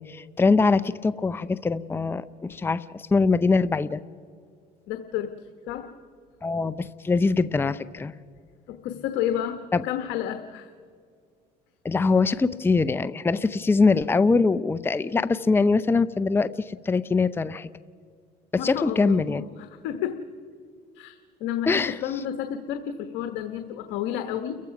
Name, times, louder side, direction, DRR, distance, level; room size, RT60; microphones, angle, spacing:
voice 1, 0.0-4.0 6.4-8.1 9.7-9.8 11.8-17.7 18.5-19.4 21.7-22.0, left 4 dB, 15° left, 14 dB, 0.5 m, -23 dB
voice 2, 4.9-5.3 5.7-5.9 8.7-10.7 18.6-20.2 20.9-24.6, left 10 dB, 80° left, 8 dB, 1.2 m, -31 dB
30.0 x 15.0 x 5.9 m, 2.1 s
supercardioid pair, 95°, 17 cm